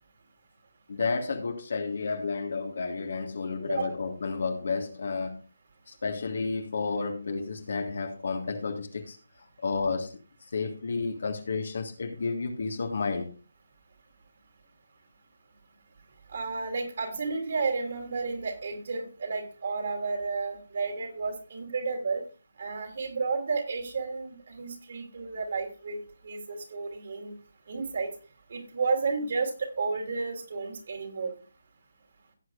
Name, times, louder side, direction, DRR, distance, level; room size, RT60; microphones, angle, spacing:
voice 1, 0.9-5.5 5.9-9.2 9.6-10.1 10.5-13.3, left 4 dB, 55° left, 4 dB, 1.8 m, -31 dB
voice 2, 16.3-22.2 22.6-26.0 26.2-27.3 27.7-28.1 28.5-31.3, right 4 dB, 50° right, 3 dB, 3.6 m, -32 dB
17.0 x 8.0 x 2.6 m, 0.35 s
figure-of-eight pair, 155°, 0 cm